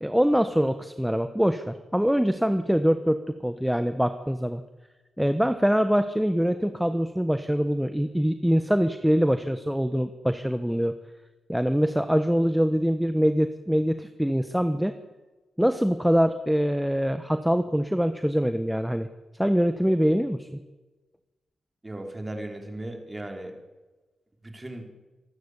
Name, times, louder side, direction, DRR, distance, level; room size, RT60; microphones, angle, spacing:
voice 1, 0.0-4.6 5.2-11.0 11.5-15.0 15.6-19.1 19.4-20.5, equal, 5° right, 9 dB, 1.1 m, -24 dB
voice 2, 21.8-23.5 24.4-24.9, right 1 dB, 20° right, 3 dB, 4.3 m, -36 dB
26.5 x 12.5 x 8.3 m, 1.2 s
cardioid pair, 75°, 0 cm